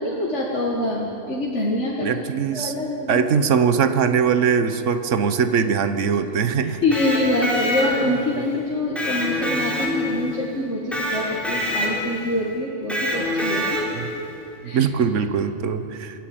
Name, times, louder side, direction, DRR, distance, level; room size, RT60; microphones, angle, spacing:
voice 1, 0.0-2.1 2.5-3.2 6.6-13.7 14.6-14.9, left 1 dB, 60° left, -3 dB, 2.2 m, -25 dB
voice 2, 2.0-2.7 3.1-6.8 13.9-14.1 14.7-16.3, right 6 dB, 65° right, 9 dB, 1.3 m, -21 dB
Electric guitar, 6.7-8.3 9.0-10.3 10.9-12.2 12.9-14.1, left 1 dB, ahead, 3.8 m, -25 dB
28.0 x 11.0 x 8.8 m, 2.8 s
omnidirectional pair, 1.4 m